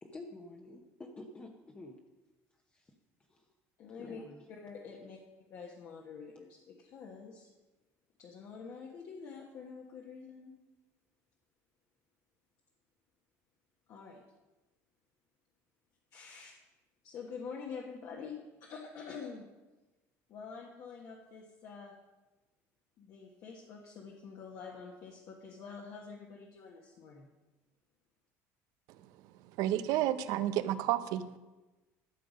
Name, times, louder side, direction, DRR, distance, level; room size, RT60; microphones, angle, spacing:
voice 1, 0.0-2.0 2.7-2.9 3.3-3.4 4.0-4.4, left 2 dB, 20° left, 2 dB, 0.9 m, -49 dB
voice 2, 3.8-4.2 4.5-5.2 5.5-7.5 8.2-10.5 13.9-14.2 16.1-16.5 17.0-19.5 20.3-21.9 23.0-27.3, left 5 dB, 55° left, -1 dB, 1.4 m, -47 dB
voice 3, 29.6-31.3, right 13 dB, 80° right, 13 dB, 0.6 m, -30 dB
12.5 x 6.7 x 5.2 m, 1.1 s
cardioid pair, 130°, 6 cm